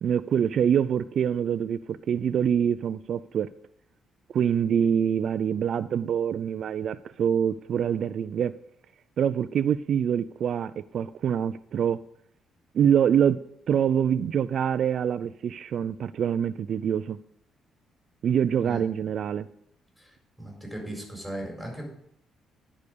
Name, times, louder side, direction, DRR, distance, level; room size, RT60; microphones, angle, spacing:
voice 1, 0.0-3.5 4.3-8.6 9.2-12.0 12.7-17.2 18.2-19.5, right 8 dB, 65° right, 12 dB, 0.3 m, -25 dB
voice 2, 20.0-21.8, right 1 dB, ahead, 0 dB, 4.4 m, -37 dB
10.5 x 4.9 x 6.7 m, 0.73 s
cardioid pair, 90°, 0 cm